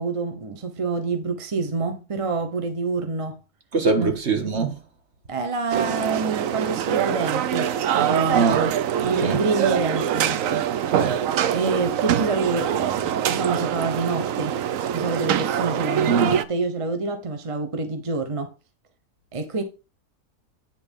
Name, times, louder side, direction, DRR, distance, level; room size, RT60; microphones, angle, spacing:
voice 1, 0.0-3.4 4.0-4.1 5.3-8.7 9.0-10.7 11.5-14.5 14.9-18.5 19.3-19.6, right 4 dB, 25° right, 0.8 m, -27 dB
voice 2, 3.7-4.8 8.3-8.6 9.0-9.4 10.9-11.2 16.1-16.3, right 4 dB, 45° right, 1.6 m, -23 dB
sound 1, 5.7-16.4, right 9 dB, 65° right, 0.9 m, -24 dB
9.6 x 4.0 x 5.3 m
omnidirectional pair, 1.7 m